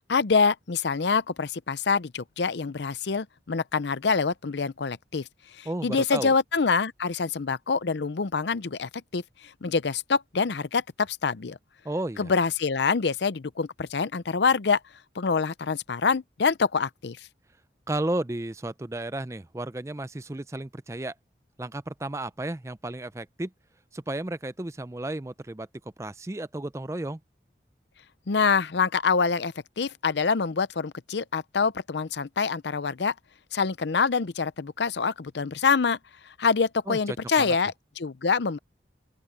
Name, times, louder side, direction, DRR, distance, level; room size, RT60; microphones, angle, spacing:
voice 1, 0.1-5.3 5.6-9.2 9.6-11.6 12.2-14.8 15.2-17.2 28.3-33.1 33.5-36.0 36.4-38.6, left 5 dB, 75° left, 0.6 m, -25 dB
voice 2, 5.7-6.3 11.8-12.3 17.9-21.1 21.6-23.5 23.9-25.7 26.0-27.2 36.9-37.6, right 1 dB, 15° right, 0.4 m, -33 dB
open air
head